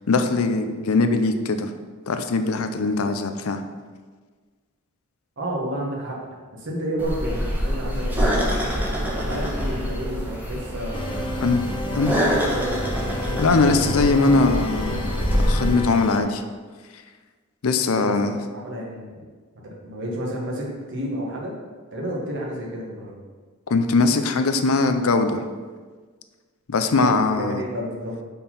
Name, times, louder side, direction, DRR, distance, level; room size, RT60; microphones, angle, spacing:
voice 1, 0.1-1.7 2.1-3.6 11.4-11.6 12.0-12.1 13.4-15.1 15.4-16.4 17.6-18.4 23.7-25.4 26.7-27.6, left 3 dB, 80° left, 8 dB, 0.6 m, -21 dB
voice 2, 5.4-6.2 6.5-8.6 9.1-11.4 11.9-12.9 17.9-19.2 19.6-21.5 21.9-23.2 26.9-28.2, equal, 60° right, -2 dB, 1.5 m, -31 dB
sound 1, 7.0-15.7, equal, 10° right, 1.2 m, -26 dB
sound 2, 10.9-16.2, left 1 dB, 25° left, 0.6 m, -30 dB
5.4 x 4.4 x 5.5 m, 1.5 s
head